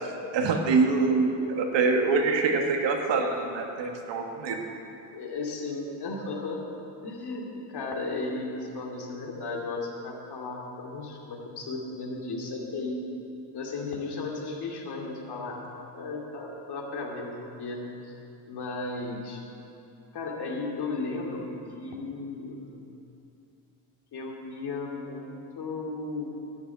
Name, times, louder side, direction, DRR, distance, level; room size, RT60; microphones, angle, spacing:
voice 1, 0.3-4.6, right 4 dB, 65° right, 2 dB, 1.7 m, -25 dB
voice 2, 5.1-6.6 7.0-13.0 13.5-15.6 15.9-17.8 18.5-19.4 20.1-21.5 21.8-22.7 24.1-26.3, left 3 dB, 55° left, -1 dB, 2.6 m, -35 dB
11.5 x 6.8 x 9.2 m, 2.8 s
cardioid pair, 110°, 46 cm